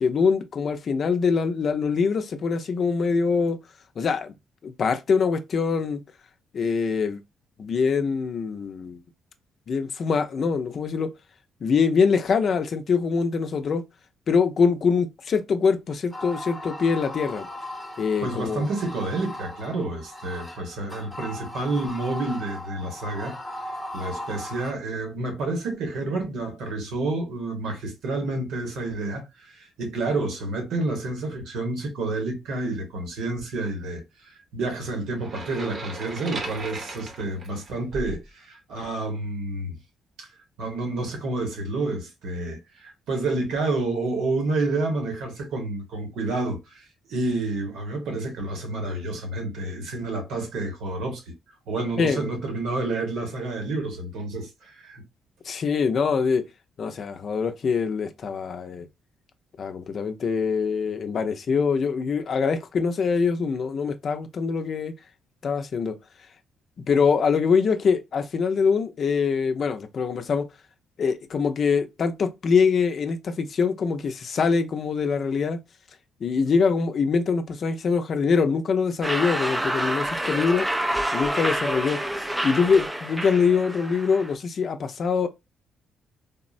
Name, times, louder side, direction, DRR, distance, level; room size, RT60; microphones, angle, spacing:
voice 1, 0.0-3.6 4.0-4.3 4.6-6.0 6.5-7.2 7.6-9.0 9.7-11.1 11.6-13.8 14.3-17.5 18.0-18.7 52.0-52.2 55.5-56.5 56.8-58.9 59.6-64.9 65.4-65.9 66.9-70.5 71.0-75.6 76.2-80.7 81.1-82.0 82.4-85.3, left 5 dB, 55° left, 0.5 m, -24 dB
sound 1, 16.1-24.7, left 1 dB, 5° left, 0.8 m, -38 dB
voice 2, 18.2-23.3 23.9-39.7 40.2-40.3 40.6-51.3 51.7-55.0, right 2 dB, 80° right, 1.1 m, -29 dB
sound 2, 35.2-38.2, right 2 dB, 45° right, 0.8 m, -36 dB
sound 3, 79.0-84.3, right 1 dB, 10° right, 0.3 m, -28 dB
3.5 x 2.0 x 2.5 m
cardioid pair, 90°, 0 cm